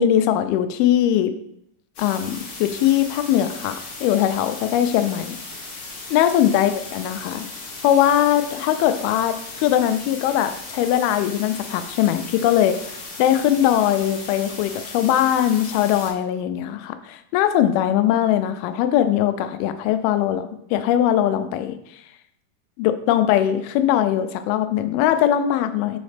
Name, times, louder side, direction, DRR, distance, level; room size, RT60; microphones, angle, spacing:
voice 1, 0.0-1.3 2.0-5.4 6.1-7.5 7.8-12.8 13.2-21.8 22.8-26.0, left 11 dB, 85° left, 9 dB, 2.4 m, -20 dB
sound 1, 2.0-16.1, left 3 dB, 65° left, 1.4 m, -37 dB
5.6 x 5.2 x 3.3 m, 0.76 s
omnidirectional pair, 4.4 m